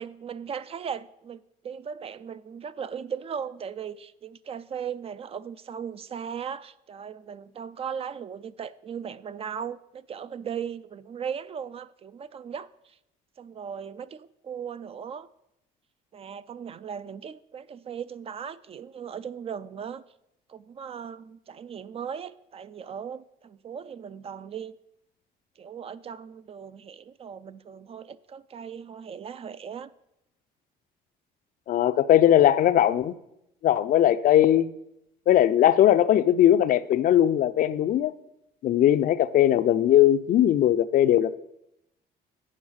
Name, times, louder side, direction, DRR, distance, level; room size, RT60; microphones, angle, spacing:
voice 1, 0.0-12.7 13.4-15.3 16.1-20.0 20.5-24.7 25.6-29.9, right 7 dB, 35° right, 0.4 m, -37 dB
voice 2, 31.7-33.1 33.6-34.7 35.3-38.1 38.6-41.3, left 11 dB, 55° left, 0.4 m, -19 dB
8.7 x 5.3 x 6.3 m
cardioid pair, 110°, 17 cm